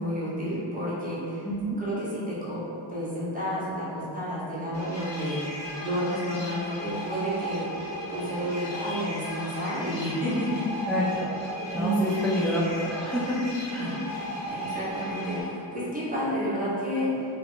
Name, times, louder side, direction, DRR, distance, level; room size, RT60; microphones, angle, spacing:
voice 1, 0.0-1.4 1.8-2.6 2.9-5.4 5.8-7.8 8.1-10.7 11.7-12.3 13.8-14.0 14.5-17.2, equal, 20° right, -9 dB, 1.0 m, -30 dB
voice 2, 1.4-1.8 10.9-11.3 11.7-13.4 13.7-13.9, equal, ahead, -7 dB, 0.6 m, -28 dB
sound 1, 4.7-15.4, equal, 70° left, 1.2 m, -36 dB
2.4 x 2.3 x 3.7 m, 2.8 s
cardioid pair, 75°, 47 cm